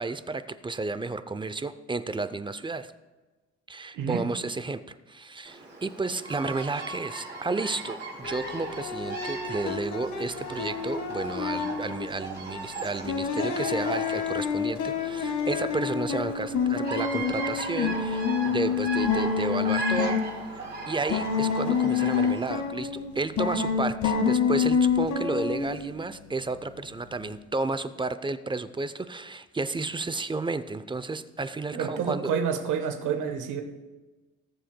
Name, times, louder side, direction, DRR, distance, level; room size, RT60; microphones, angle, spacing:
voice 1, 0.0-2.9 3.7-20.2 20.9-32.3, right 3 dB, 15° right, 12 dB, 0.5 m, -32 dB
voice 2, 3.9-4.3 31.7-33.6, right 7 dB, 85° right, 7 dB, 1.2 m, -29 dB
Bird vocalization bird call bird song, 5.4-22.7, right 3 dB, 35° right, 2.7 m, -38 dB
sound 1, 8.2-12.1 13.1-20.3 21.1-23.1 23.4-25.9, left 6 dB, 75° left, 1.3 m, -28 dB
19.0 x 7.5 x 2.2 m, 1.2 s
cardioid pair, 90°, 30 cm